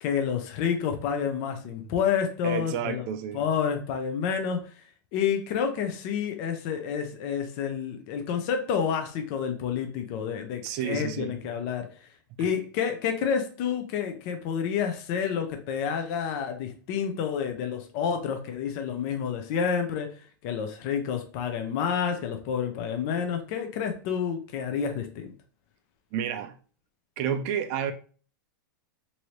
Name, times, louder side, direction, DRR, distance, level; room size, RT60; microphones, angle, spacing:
voice 1, 0.0-3.0 3.3-4.7 5.1-12.1 12.4-25.3, left 7 dB, 40° left, 0.5 m, -29 dB
voice 2, 2.4-3.4 10.6-11.4 26.1-26.6 27.2-27.9, right 8 dB, 40° right, 0.4 m, -30 dB
3.1 x 2.6 x 2.8 m
supercardioid pair, 150°, 11 cm